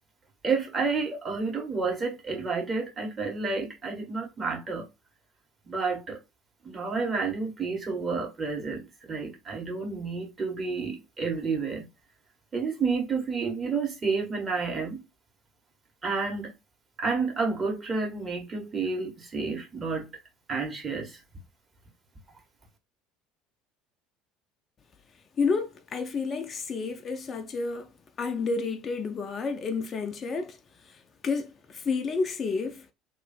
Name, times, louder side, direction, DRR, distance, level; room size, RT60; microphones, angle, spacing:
voice 1, 0.4-4.8 5.6-6.2 6.6-11.9 12.5-15.0 16.0-16.5 17.0-20.1 20.5-21.2, right 4 dB, 30° right, 1.6 m, -30 dB
voice 2, 25.4-27.9 28.2-32.9, left 4 dB, 35° left, 0.5 m, -30 dB
3.0 x 2.5 x 4.3 m
figure-of-eight pair, 65°, 0 cm